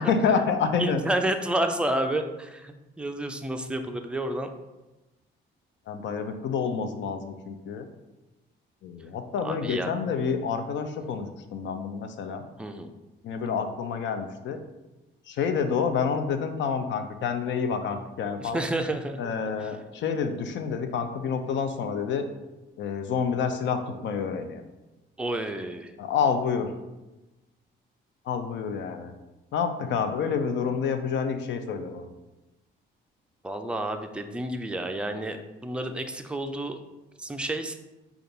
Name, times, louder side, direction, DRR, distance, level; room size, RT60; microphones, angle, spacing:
voice 1, 0.0-1.0 5.9-7.9 8.8-12.5 13.2-14.6 15.3-18.6 19.2-22.3 22.8-24.6 26.0-26.7 28.3-29.1 29.5-32.1, left 6 dB, 70° left, 8 dB, 0.5 m, -28 dB
voice 2, 0.8-4.5 9.4-9.9 12.6-12.9 18.4-19.3 19.6-19.7 25.2-25.9 33.4-35.4 35.6-36.8 37.2-37.7, right 1 dB, 5° right, 5 dB, 0.4 m, -30 dB
5.1 x 2.4 x 3.9 m, 1.0 s
cardioid pair, 90°, 20 cm